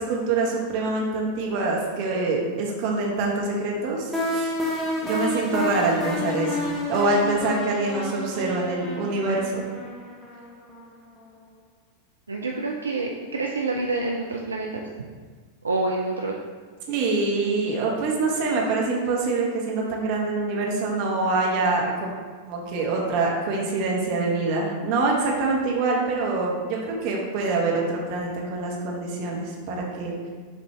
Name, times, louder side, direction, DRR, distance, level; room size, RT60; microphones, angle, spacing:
voice 1, 0.0-4.5 5.0-9.6 16.9-22.1 22.5-30.2, right 3 dB, 45° right, -2 dB, 0.9 m, -25 dB
Hitting E Sweep, 4.1-10.9, left 1 dB, 5° left, 1.0 m, -30 dB
voice 2, 12.3-14.9 15.6-16.4, right 3 dB, 75° right, 0 dB, 0.3 m, -27 dB
6.6 x 2.6 x 3.1 m, 1.5 s
figure-of-eight pair, 90°, 0 cm